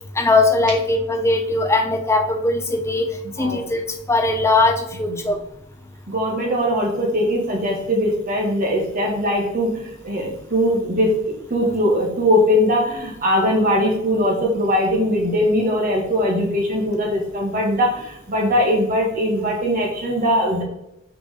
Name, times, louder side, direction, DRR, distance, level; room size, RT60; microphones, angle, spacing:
voice 1, 0.2-3.1 3.4-3.8 4.1-5.4, left 2 dB, 15° left, 5 dB, 0.8 m, -19 dB
voice 2, 4.9-5.3 6.1-20.6, equal, 45° right, -2 dB, 2.2 m, -20 dB
5.8 x 5.7 x 3.8 m, 0.86 s
head